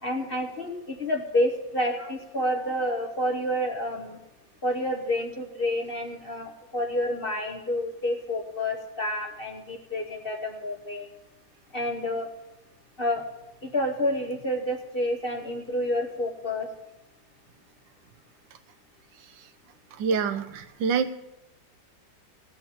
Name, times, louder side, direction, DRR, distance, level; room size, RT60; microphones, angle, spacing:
voice 1, 0.0-4.2 4.6-11.1 11.7-12.3 13.0-13.2 13.6-16.7, left 1 dB, 35° left, 2 dB, 1.1 m, -29 dB
voice 2, 20.0-21.1, right 5 dB, 75° right, 10 dB, 1.4 m, -26 dB
17.0 x 5.8 x 7.0 m, 0.96 s
omnidirectional pair, 2.1 m